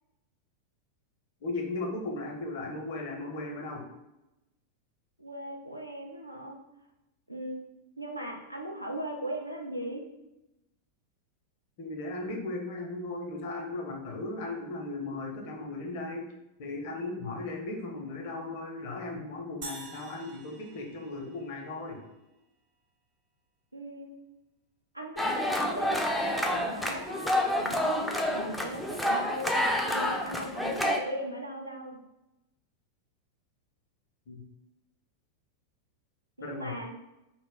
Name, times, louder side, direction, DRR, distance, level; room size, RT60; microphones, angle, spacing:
voice 1, 1.4-3.9 11.8-16.3 16.6-22.0 34.3-34.5 36.4-36.8, left 2 dB, 50° left, 1 dB, 0.6 m, -37 dB
voice 2, 5.2-6.6 7.3-7.6 8.0-10.0 23.7-24.1 24.9-32.0 36.4-37.0, right 1 dB, 90° right, 1 dB, 0.4 m, -38 dB
sound 1, 19.6-22.0, right 3 dB, 45° right, 0.7 m, -46 dB
sound 2, 25.2-31.0, left 1 dB, ahead, 0.3 m, -28 dB
2.1 x 2.0 x 3.5 m, 0.93 s
figure-of-eight pair, 90°, 0 cm